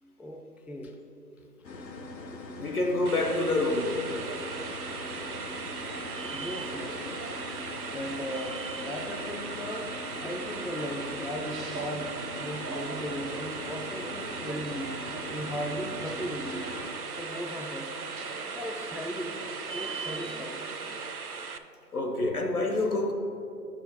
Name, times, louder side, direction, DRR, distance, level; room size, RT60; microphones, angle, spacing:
voice 1, 0.0-1.0 1.6-1.9 6.3-7.3 7.9-9.9 10.2-12.1 12.4-15.0 15.2-16.7 17.2-18.0 18.5-19.4 19.7-20.6, equal, 5° right, 3 dB, 0.3 m, -37 dB
sound 1, 1.6-16.9, left 2 dB, 90° left, 0.9 m, -42 dB
voice 2, 2.6-4.0 21.9-23.1, left 2 dB, 60° left, 4 dB, 0.9 m, -27 dB
sound 2, 3.1-21.6, right 5 dB, 65° right, 0.5 m, -39 dB
sound 3, 3.6-21.1, right 4 dB, 80° right, 0.9 m, -43 dB
9.1 x 5.6 x 4.1 m, 2.9 s
figure-of-eight pair, 170°, 50 cm